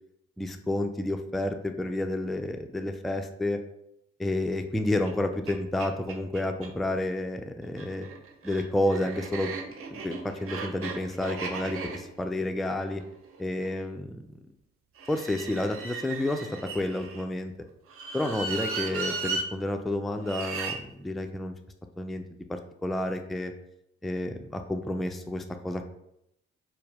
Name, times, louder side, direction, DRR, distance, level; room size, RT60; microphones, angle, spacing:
voice 1, 0.4-3.6 4.2-8.1 8.4-9.5 9.9-13.0 13.4-14.2 15.1-17.5 18.1-21.5 22.0-22.2 22.5-23.5 24.0-25.8, left 1 dB, ahead, 5 dB, 0.3 m, -30 dB
sound 1, 5.0-5.1 5.5-5.6 5.8-6.7 7.6-13.8 15.0-17.2 17.9-19.5 20.2-20.8, right 4 dB, 50° right, 0.7 m, -36 dB
4.4 x 2.0 x 3.3 m, 0.77 s
hypercardioid pair, 45°, 30 cm